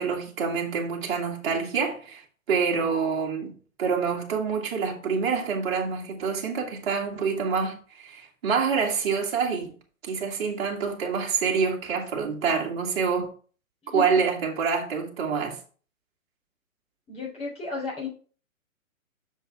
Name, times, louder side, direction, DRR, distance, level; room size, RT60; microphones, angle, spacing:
voice 1, 0.0-2.2 2.5-3.5 3.8-9.7 10.1-13.3 13.9-15.6, right 5 dB, 45° right, 2.2 m, -26 dB
voice 2, 13.8-14.2 17.1-18.1, left 3 dB, 15° left, 3.6 m, -33 dB
6.8 x 6.7 x 3.6 m
figure-of-eight pair, 130°, 41 cm